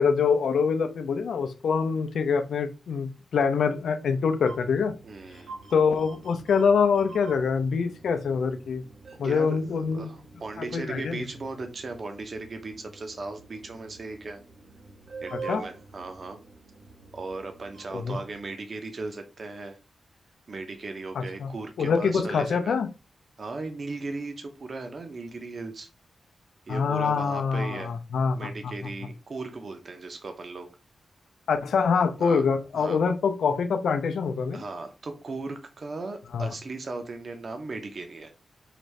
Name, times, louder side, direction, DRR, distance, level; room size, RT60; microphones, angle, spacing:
voice 1, 0.0-4.9 5.7-8.8 9.2-10.1 10.6-11.2 15.5-15.6 17.9-18.2 21.1-21.5 21.8-22.9 26.7-28.7 31.5-34.6 36.3-36.5, left 5 dB, 75° left, 0.5 m, -25 dB
sound 1, 4.4-18.4, right 4 dB, 60° right, 1.1 m, -46 dB
voice 2, 5.0-5.5 9.2-14.4 15.2-16.4 17.1-19.8 20.5-22.8 23.4-25.9 26.7-27.9 28.3-30.7 32.2-32.4 32.7-33.0 34.5-38.3, right 3 dB, 40° right, 0.6 m, -37 dB
4.9 x 2.6 x 3.1 m
wide cardioid pair, 170°, 0 cm